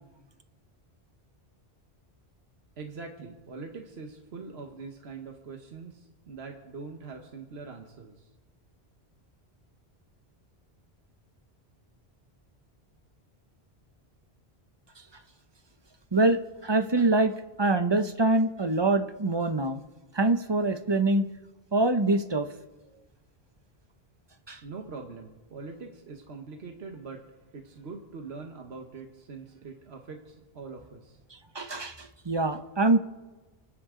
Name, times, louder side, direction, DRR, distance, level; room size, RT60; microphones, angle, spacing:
voice 1, 2.8-8.3 24.6-27.3 27.5-31.2, right 4 dB, 80° right, 3 dB, 1.5 m, -43 dB
voice 2, 16.1-19.8 20.1-21.2 21.7-22.5 24.5-24.6 31.5-33.0, right 2 dB, 30° right, 9 dB, 0.7 m, -24 dB
30.0 x 10.0 x 3.8 m, 1.2 s
omnidirectional pair, 1.1 m